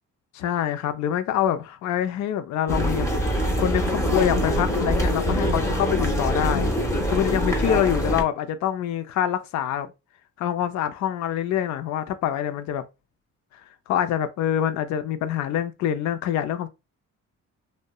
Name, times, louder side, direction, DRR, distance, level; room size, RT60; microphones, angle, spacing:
voice 1, 0.3-3.1 3.6-6.7 7.1-9.9 10.4-12.8 13.9-16.7, left 10 dB, 65° left, 0.4 m, -25 dB
sound 1, 2.7-8.2, equal, 10° left, 0.6 m, -24 dB
2.8 x 2.1 x 2.2 m
cardioid pair, 90°, 30 cm